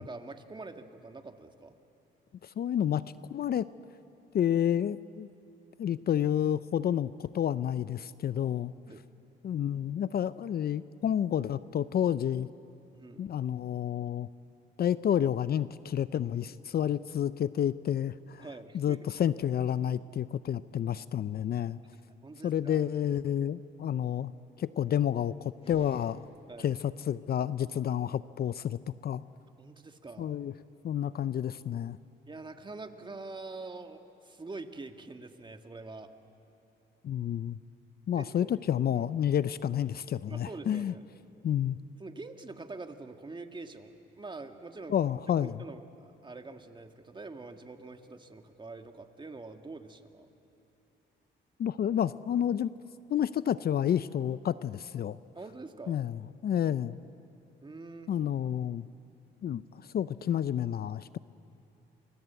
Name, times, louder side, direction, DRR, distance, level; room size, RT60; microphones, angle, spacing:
voice 1, 0.0-1.8 8.9-9.0 12.9-13.3 18.4-19.0 22.2-22.8 26.5-26.7 29.6-30.4 32.3-36.1 38.2-38.5 38.9-39.0 40.3-41.0 42.0-44.9 45.4-50.3 55.3-56.0 57.6-58.1, right 3 dB, 25° right, 6 dB, 1.8 m, -45 dB
voice 2, 2.4-3.0 3.3-3.7 4.3-5.3 5.8-8.7 9.4-12.5 13.2-14.3 14.8-18.4 18.7-21.8 22.4-24.3 24.6-26.3 26.6-29.2 30.2-30.5 30.8-32.0 37.0-37.6 38.1-40.9 41.4-41.8 44.9-45.6 51.6-52.7 53.1-55.2 55.9-57.0 58.1-58.9 59.4-59.6 59.9-61.2, left 10 dB, 50° left, 16 dB, 0.6 m, -30 dB
sound 1, 25.5-26.8, left 2 dB, 30° left, 3.7 m, -50 dB
28.0 x 24.0 x 8.2 m, 2.9 s
cardioid pair, 90°, 20 cm